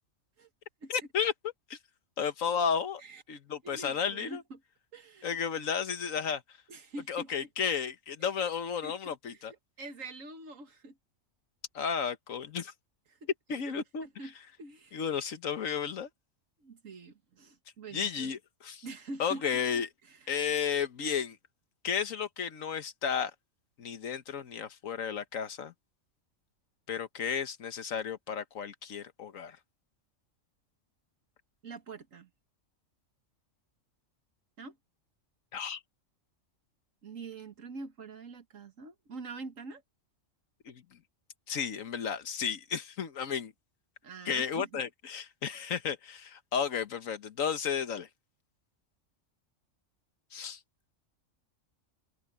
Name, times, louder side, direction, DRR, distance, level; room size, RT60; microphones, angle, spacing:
voice 1, 0.9-1.3 1.7-1.8 2.2-3.0 3.3-4.4 5.2-6.4 7.1-9.5 11.7-12.7 13.5-14.1 14.9-16.1 17.9-18.8 19.2-19.9 20.3-21.4 21.8-23.3 23.8-25.7 26.9-29.6 35.5-35.8 40.7-40.8 41.5-43.5 44.2-48.1 50.3-50.6, left 7 dB, 85° left, 1.6 m, -33 dB
voice 2, 3.6-4.6 4.9-5.3 6.7-7.5 8.2-8.3 8.8-11.0 13.1-13.7 14.0-15.0 16.6-18.3 18.8-19.6 20.0-20.3 31.6-32.3 34.6-34.8 37.0-39.8 44.0-44.8, right 3 dB, 80° right, 2.0 m, -45 dB
omnidirectional pair, 1.3 m